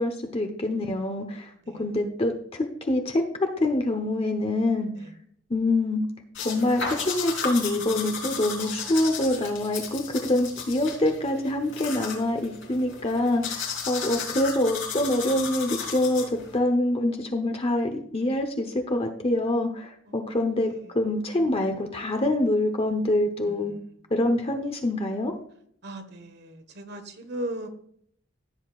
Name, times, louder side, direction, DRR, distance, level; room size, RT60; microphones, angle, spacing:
voice 1, 0.0-4.9 5.5-6.0 6.4-23.7 24.1-25.3, left 1 dB, 30° left, 4 dB, 1.0 m, -25 dB
sound 1, 6.3-16.6, left 5 dB, 80° left, 3.9 m, -34 dB
voice 2, 20.0-20.9 23.4-23.9 25.8-27.7, right 1 dB, 60° right, 7 dB, 1.4 m, -39 dB
15.0 x 8.2 x 2.5 m, 0.64 s
head